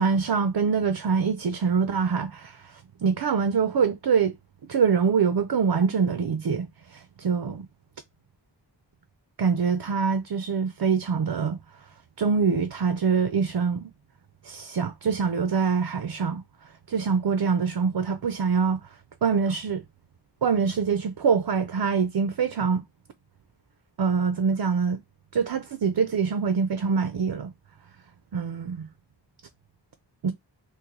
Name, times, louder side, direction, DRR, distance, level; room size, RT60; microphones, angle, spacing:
voice 1, 0.0-4.3 4.7-7.7 9.4-11.6 12.2-13.9 14.4-16.4 16.9-18.8 19.2-19.8 20.4-22.8 24.0-25.0 25.3-27.5 28.3-28.9 30.2-30.3, right 5 dB, 60° right, 0.5 m, -24 dB
3.0 x 2.6 x 3.8 m
wide cardioid pair, 40°, 44 cm